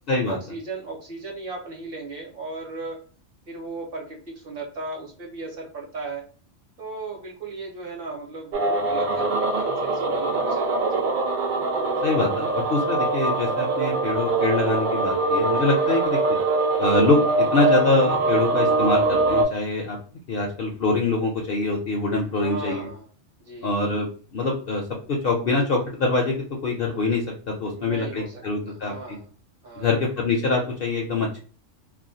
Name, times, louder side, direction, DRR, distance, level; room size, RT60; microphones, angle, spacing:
voice 1, 0.3-3.0 3.5-6.2 6.8-11.0 15.8-16.1 22.4-23.1 23.4-23.7 27.7-29.3 29.6-29.9, right 3 dB, 55° right, -1 dB, 0.8 m, -36 dB
sound 1, 8.5-19.5, right 3 dB, 70° right, 0.4 m, -23 dB
voice 2, 12.0-16.4 16.8-20.0 20.3-22.9 23.6-24.8 25.1-26.3 26.6-29.2 29.8-31.4, left 3 dB, 60° left, 0 dB, 0.6 m, -24 dB
2.4 x 2.1 x 2.6 m, 0.40 s
omnidirectional pair, 1.3 m